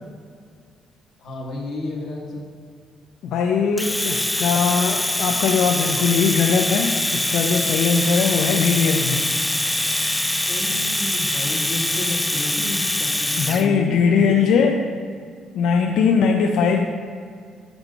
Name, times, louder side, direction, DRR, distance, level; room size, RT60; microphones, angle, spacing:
voice 1, 1.2-2.5 10.5-14.7, left 1 dB, 50° left, -2 dB, 1.3 m, -31 dB
voice 2, 3.2-9.3 13.4-14.8 15.5-16.8, left 6 dB, 80° left, 3 dB, 0.4 m, -20 dB
Domestic sounds home sounds, 3.8-13.7, left 1 dB, 10° left, 0.3 m, -23 dB
5.4 x 4.5 x 5.4 m, 2.1 s
cardioid pair, 100°, 0 cm